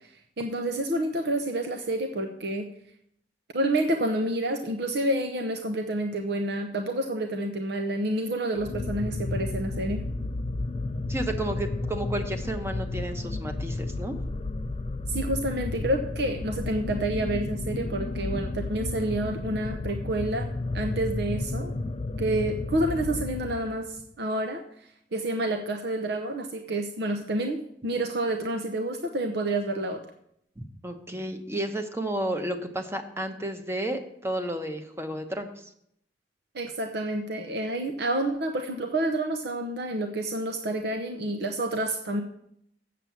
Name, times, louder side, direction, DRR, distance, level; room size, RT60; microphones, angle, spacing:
voice 1, 0.4-2.7 3.5-10.1 15.1-20.5 20.7-21.7 22.2-24.6 25.1-30.0 36.5-42.2, right 1 dB, 65° right, 4 dB, 0.8 m, -29 dB
sound 1, 8.6-23.9, left 2 dB, 30° left, 0.4 m, -32 dB
voice 2, 11.1-14.2 30.6-35.6, right 1 dB, 15° right, 6 dB, 1.0 m, -32 dB
7.6 x 7.5 x 7.1 m, 0.72 s
head